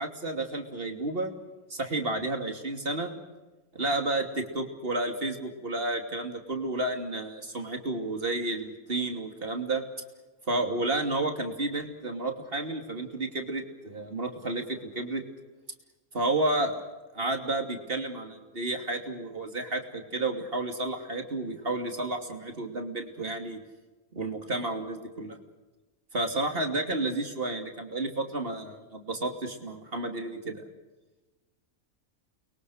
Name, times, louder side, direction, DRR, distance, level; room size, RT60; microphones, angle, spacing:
voice 1, 0.0-1.3 1.7-3.1 3.7-9.8 10.5-15.2 16.1-16.7 17.1-23.6 24.1-25.4 26.1-30.6, right 2 dB, 40° right, 4 dB, 3.1 m, -31 dB
30.0 x 23.0 x 6.6 m, 1.2 s
omnidirectional pair, 1.5 m